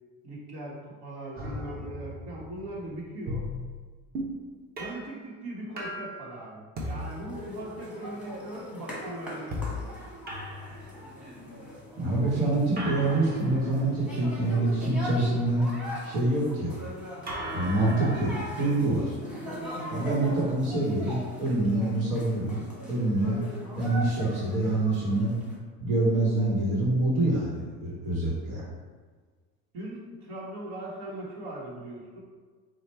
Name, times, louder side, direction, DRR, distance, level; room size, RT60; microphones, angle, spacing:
voice 1, 0.2-3.4 4.8-9.9 29.7-32.2, right 1 dB, 70° right, -5 dB, 1.5 m, -40 dB
sound 1, 1.4-4.4 4.8-5.1 5.8-6.2 6.8-8.0 9.5-9.9 10.3-11.4 12.8-15.1 17.3-18.8, left 1 dB, 30° right, 0.8 m, -38 dB
sound 2, 7.0-25.5, equal, 5° right, 1.2 m, -40 dB
voice 2, 12.0-15.7 16.0-16.7 17.5-19.1 19.9-22.6 22.9-23.4 23.8-25.3 25.8-28.6, right 2 dB, 85° right, -5 dB, 1.4 m, -26 dB
4.8 x 2.4 x 4.4 m, 1.5 s
cardioid pair, 145°, 30 cm